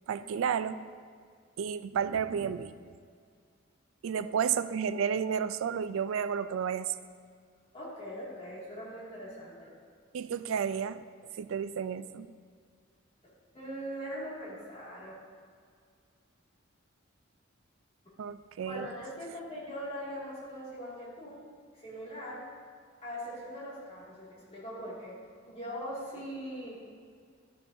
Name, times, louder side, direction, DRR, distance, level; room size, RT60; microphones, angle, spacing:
voice 1, 0.1-0.8 1.6-2.8 4.0-6.9 10.1-11.0 11.4-12.3 18.2-18.9, right 7 dB, 90° right, 13 dB, 0.3 m, -31 dB
voice 2, 7.7-9.7 13.5-15.1 18.6-21.4 21.7-22.5 23.0-25.2 25.4-26.8, equal, 30° left, -7 dB, 2.2 m, -41 dB
11.5 x 6.8 x 2.7 m, 2.1 s
head